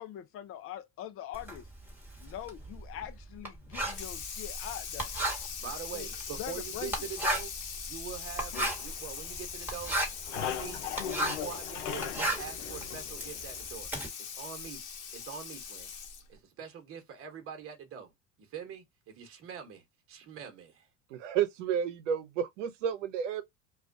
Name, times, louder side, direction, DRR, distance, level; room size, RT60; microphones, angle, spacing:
voice 1, 0.0-1.7 2.2-5.1 5.9-6.1 6.4-7.1, left 11 dB, 40° left, 0.6 m, -43 dB
Writing, 1.3-11.5 11.9-14.1, right 1 dB, 5° right, 1.2 m, -35 dB
Water tap faucet / Sink (filling or washing), 3.9-16.4, left 7 dB, 55° left, 1.0 m, -41 dB
voice 2, 5.6-7.5 7.9-10.0 10.3-13.9 14.2-15.9 16.3-18.1 18.4-20.9, right 8 dB, 40° right, 1.0 m, -44 dB
sound 1, 8.5-9.7 10.0-13.7, left 10 dB, 85° left, 0.6 m, -39 dB
voice 3, 21.1-23.4, right 8 dB, 85° right, 0.6 m, -31 dB
2.3 x 2.2 x 2.5 m
hypercardioid pair, 80°, 36 cm